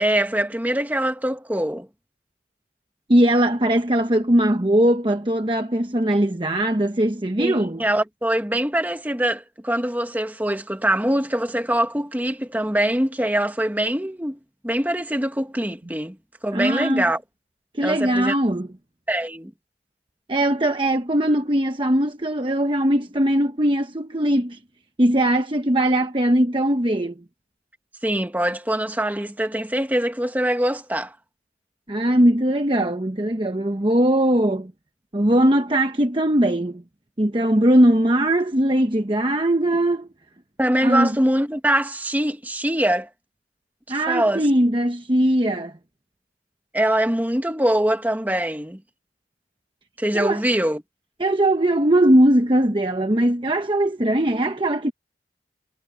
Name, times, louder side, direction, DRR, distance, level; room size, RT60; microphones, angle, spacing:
voice 1, 0.0-1.9 7.4-14.4 14.6-16.2 16.4-17.2 17.8-18.3 19.1-19.5 28.0-31.1 40.6-43.1 43.9-44.5 46.7-48.8 50.0-50.8, right 1 dB, 10° right, 1.5 m, -23 dB
voice 2, 3.1-7.8 16.5-17.0 17.7-18.7 20.3-24.6 25.0-27.2 31.9-34.7 35.1-36.8 37.2-40.1 40.8-41.1 43.9-45.7 50.1-50.4 51.2-54.9, right 1 dB, 25° right, 1.0 m, -20 dB
head